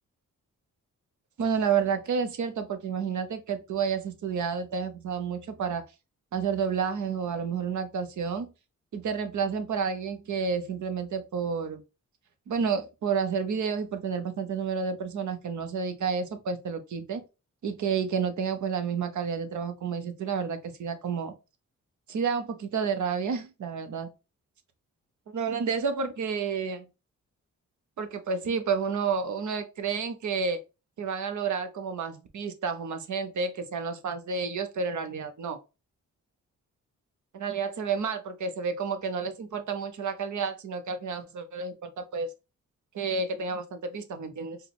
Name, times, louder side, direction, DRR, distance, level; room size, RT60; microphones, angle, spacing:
voice 1, 1.4-5.8 6.3-8.5 8.9-11.8 12.5-17.2 17.6-21.3 22.1-24.1 25.3-26.9 28.0-30.6 31.0-35.6 37.3-42.3 42.9-44.6, right 6 dB, 70° right, 0.8 m, -30 dB
4.5 x 2.2 x 3.4 m
cardioid pair, 75°, 31 cm